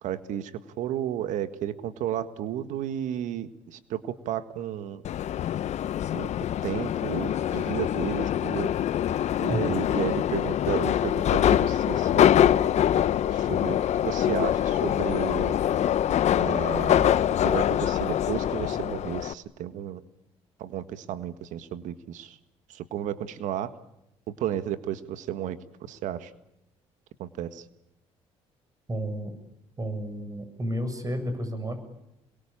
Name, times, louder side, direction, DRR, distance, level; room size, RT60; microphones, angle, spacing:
voice 1, 0.0-0.5 0.8-5.0 6.1-6.3 6.6-8.7 9.4-12.4 13.3-15.6 16.3-17.2 17.4-20.0 20.6-22.4 22.7-23.7 24.4-25.6 25.9-26.3 27.2-27.7, right 11 dB, 75° right, 12 dB, 1.7 m, -33 dB
Subway metro underground, 5.0-19.3, left 10 dB, 60° left, 1.0 m, -24 dB
voice 2, 9.5-9.8 28.9-29.3 29.8-31.8, equal, 25° right, 9 dB, 7.7 m, -31 dB
27.0 x 22.5 x 8.8 m, 0.86 s
supercardioid pair, 65°, 13 cm